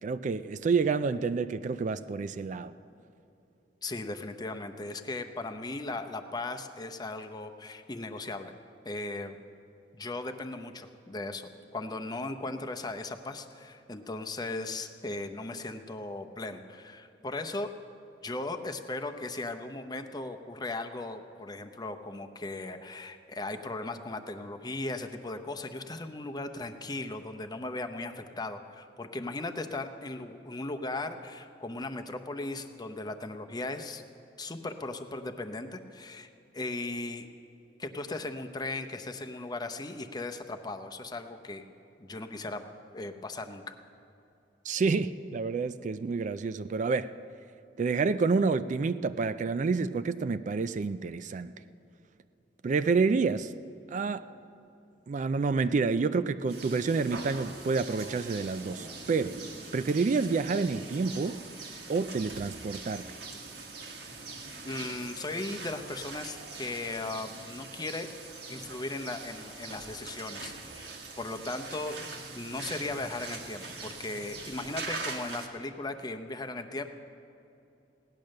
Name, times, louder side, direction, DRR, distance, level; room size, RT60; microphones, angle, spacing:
voice 1, 0.0-2.7 44.7-47.1 47.8-51.5 52.6-53.5 53.9-54.3 55.1-59.4 59.7-61.4 61.9-63.0, right 4 dB, 45° right, 0.3 m, -28 dB
voice 2, 3.8-8.5 8.8-9.4 9.9-17.7 18.2-34.0 34.4-37.3 37.8-41.6 42.0-42.6 42.9-43.7 64.6-68.1 68.5-70.9 71.2-76.8, left 2 dB, 25° left, 0.7 m, -37 dB
sound 1, 56.5-75.5, right 3 dB, 70° right, 1.7 m, -42 dB
17.0 x 10.5 x 6.5 m
head